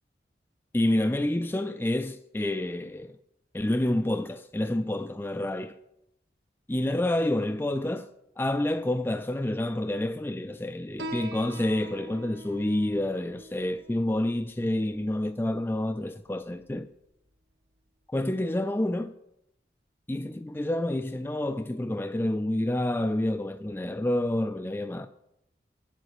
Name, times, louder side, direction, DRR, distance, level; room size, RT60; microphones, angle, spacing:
voice 1, 0.7-3.2 3.5-5.8 6.7-8.1 8.4-16.9 18.1-19.1 20.1-25.1, left 1 dB, 10° left, 0.3 m, -28 dB
Piano, 11.0-18.1, right 1 dB, 75° right, 1.1 m, -46 dB
9.3 x 7.7 x 6.5 m
head